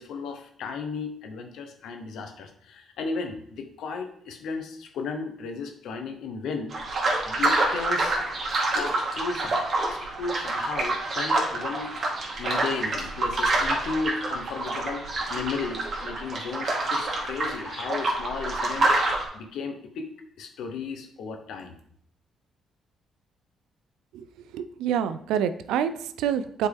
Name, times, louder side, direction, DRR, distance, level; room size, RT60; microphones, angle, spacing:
voice 1, 0.0-6.7 7.2-8.2 8.7-9.6 9.9-11.9 12.4-18.9 19.3-20.1 20.4-21.8, left 4 dB, 80° left, 5 dB, 1.0 m, -34 dB
sound 1, 6.7-19.2, right 2 dB, 45° right, 1.9 m, -27 dB
voice 2, 24.5-26.7, right 9 dB, 90° right, 12 dB, 0.4 m, -27 dB
8.1 x 4.5 x 3.5 m, 0.68 s
cardioid pair, 90°, 0 cm